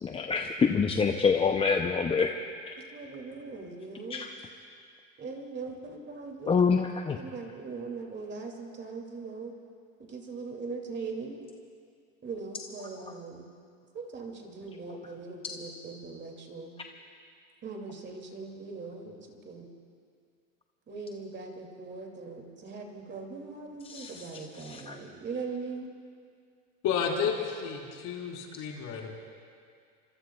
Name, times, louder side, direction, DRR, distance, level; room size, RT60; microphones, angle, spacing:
voice 1, 0.0-2.3 2.7-2.8 4.1-4.3 6.5-7.2 23.9-24.1 24.6-25.0, left 5 dB, 15° left, 5 dB, 0.5 m, -26 dB
voice 2, 2.8-4.3 5.2-6.5 7.1-9.5 10.0-11.4 12.2-13.5 13.9-16.7 17.6-19.7 20.9-25.9, right 4 dB, 25° right, 2 dB, 2.4 m, -40 dB
voice 3, 26.8-29.2, left 7 dB, 50° left, -1 dB, 3.7 m, -31 dB
25.5 x 23.0 x 2.3 m, 2.2 s
supercardioid pair, 115°, 41 cm